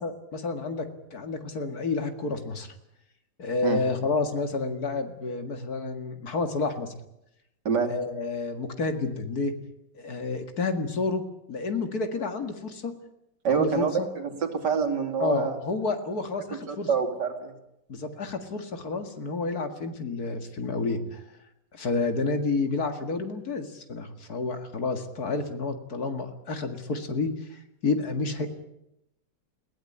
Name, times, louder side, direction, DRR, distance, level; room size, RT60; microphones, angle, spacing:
voice 1, 0.0-2.7 3.4-6.9 7.9-9.5 9.9-12.9 13.5-14.1 15.2-16.9 17.9-21.2 21.7-28.5, left 3 dB, 60° left, 7 dB, 2.4 m, -30 dB
voice 2, 13.4-15.6 16.7-17.5, right 6 dB, 75° right, 5 dB, 3.2 m, -26 dB
21.0 x 17.0 x 9.9 m, 0.84 s
omnidirectional pair, 1.9 m